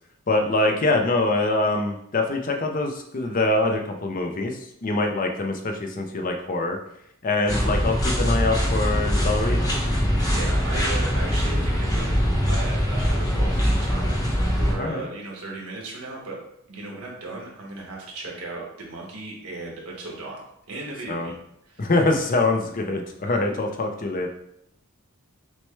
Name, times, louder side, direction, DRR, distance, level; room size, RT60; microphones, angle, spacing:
voice 1, 0.3-6.8 7.2-9.7 14.8-15.1 21.1-21.3 21.8-24.3, left 2 dB, 35° left, 3 dB, 0.5 m, -24 dB
sound 1, 7.5-14.7, equal, 15° left, 0.9 m, -22 dB
voice 2, 10.3-16.4 16.7-20.4 20.7-21.4 21.7-21.9, right 2 dB, 80° right, -2 dB, 1.3 m, -36 dB
6.1 x 2.2 x 3.2 m, 0.75 s
head